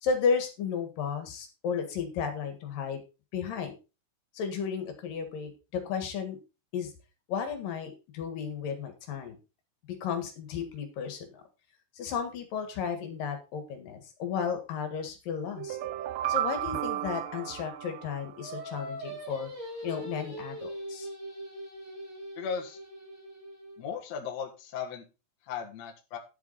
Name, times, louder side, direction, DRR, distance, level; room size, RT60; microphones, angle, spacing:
voice 1, 0.0-3.0 3.3-3.7 4.3-6.4 6.7-6.9 7.3-9.4 10.0-11.4 12.0-15.8 16.3-19.5 19.8-21.1, left 6 dB, 75° left, 6 dB, 3.4 m, -33 dB
sound 1, 15.6-18.6, right 13 dB, 80° right, 2.3 m, -33 dB
Singing, 18.4-23.8, equal, 20° right, 3.9 m, -41 dB
voice 2, 22.4-22.8 23.8-25.0 25.4-26.2, left 6 dB, 55° left, 1 dB, 2.5 m, -36 dB
10.5 x 8.3 x 4.1 m, 0.30 s
omnidirectional pair, 4.0 m